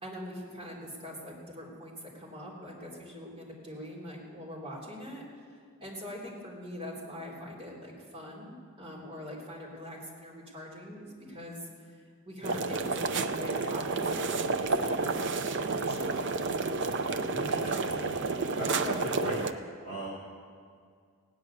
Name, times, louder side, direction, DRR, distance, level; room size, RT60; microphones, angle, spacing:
voice 1, 0.0-5.5 5.8-11.9 12.2-16.3, equal, 25° right, -5 dB, 3.3 m, -43 dB
sound 1, 12.4-19.5, right 3 dB, 50° right, 0.6 m, -30 dB
voice 2, 17.3-18.2 18.6-19.4 19.8-20.1, right 1 dB, 30° left, -6 dB, 2.3 m, -37 dB
17.0 x 6.5 x 9.7 m, 2.2 s
head